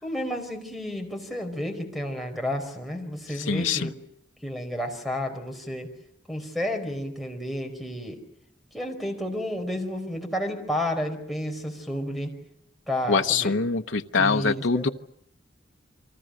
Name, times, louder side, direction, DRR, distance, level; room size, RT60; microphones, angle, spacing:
voice 1, 0.0-3.9 4.4-5.9 6.3-8.2 8.7-12.3 12.9-13.6 14.1-14.9, left 1 dB, ahead, 5 dB, 4.8 m, -31 dB
voice 2, 3.4-3.9 13.1-14.9, left 4 dB, 80° left, 6 dB, 0.9 m, -24 dB
29.5 x 24.0 x 6.4 m, 0.73 s
head